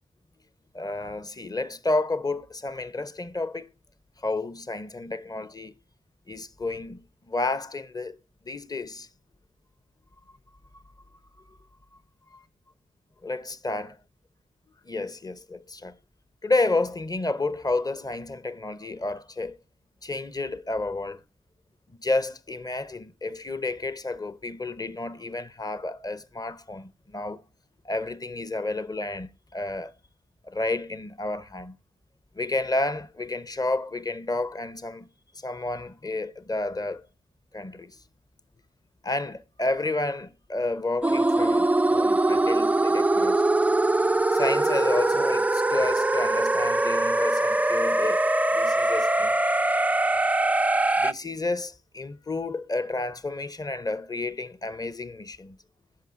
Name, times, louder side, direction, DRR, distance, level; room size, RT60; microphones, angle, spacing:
voice 1, 0.7-3.7 4.2-5.7 6.3-8.2 8.5-9.1 12.3-12.4 13.2-13.9 14.8-16.0 16.4-19.6 20.0-21.2 22.0-27.4 27.8-29.9 30.4-31.8 32.3-35.1 35.4-37.1 37.5-38.0 39.0-43.4 44.3-49.4 51.0-55.6, left 2 dB, 25° left, 0.8 m, -30 dB
sound 1, 41.0-51.1, right 2 dB, 10° right, 0.3 m, -22 dB
15.0 x 5.6 x 2.6 m
cardioid pair, 45°, 15 cm